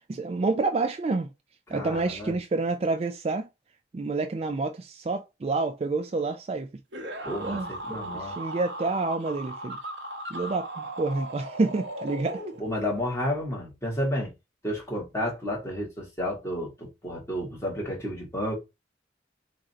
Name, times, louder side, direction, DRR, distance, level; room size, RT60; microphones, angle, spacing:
voice 1, 0.1-1.3 1.7-3.5 3.9-6.7 7.4-9.8 10.3-12.4, right 3 dB, 35° right, 0.3 m, -28 dB
voice 2, 1.7-2.3 7.2-8.3 12.6-14.3 14.6-18.5, left 1 dB, 15° left, 1.8 m, -31 dB
sound 1, 6.9-13.0, right 1 dB, 75° right, 1.0 m, -37 dB
3.7 x 2.6 x 4.2 m
head